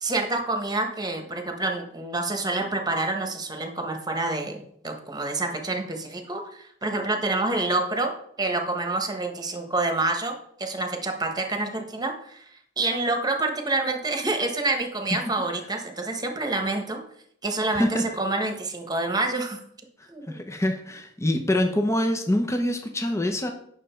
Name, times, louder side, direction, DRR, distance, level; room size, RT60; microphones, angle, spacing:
voice 1, 0.0-12.4 12.8-17.0 17.4-19.6 20.1-20.4, right 2 dB, 20° right, 4 dB, 1.3 m, -27 dB
voice 2, 17.7-18.0 20.3-23.5, left 1 dB, 15° left, 4 dB, 0.8 m, -25 dB
9.1 x 6.3 x 4.5 m, 0.67 s
head